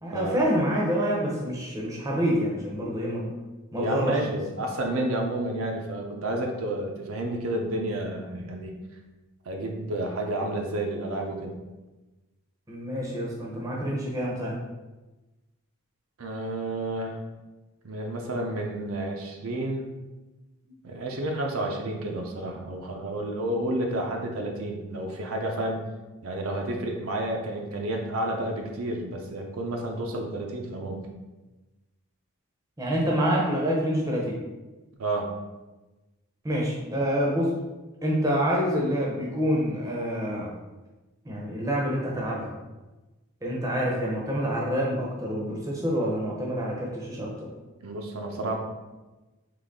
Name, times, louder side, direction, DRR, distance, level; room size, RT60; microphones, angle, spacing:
voice 1, 0.0-3.3 3.7-4.2 12.7-14.6 20.7-20.8 32.8-34.4 36.4-37.6 38.0-40.5 41.2-42.5 43.4-47.5, equal, 15° right, -3 dB, 0.7 m, -27 dB
voice 2, 3.8-8.7 9.5-11.6 16.2-17.2 17.8-19.9 20.8-25.8 26.2-31.1 35.0-35.3 47.8-48.6, right 1 dB, 70° right, 1 dB, 0.6 m, -30 dB
3.8 x 3.1 x 3.6 m, 1.1 s
head